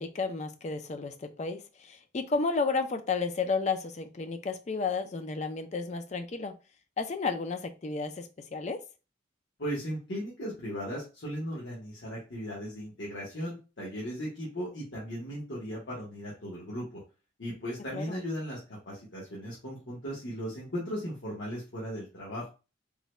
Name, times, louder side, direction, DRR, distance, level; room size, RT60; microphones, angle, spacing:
voice 1, 0.0-6.5 7.0-8.8 17.9-18.2, left 4 dB, 35° left, 8 dB, 0.4 m, -32 dB
voice 2, 9.6-17.0 17.4-22.5, equal, 75° left, -6 dB, 1.1 m, -37 dB
3.7 x 2.2 x 3.1 m, 0.31 s
head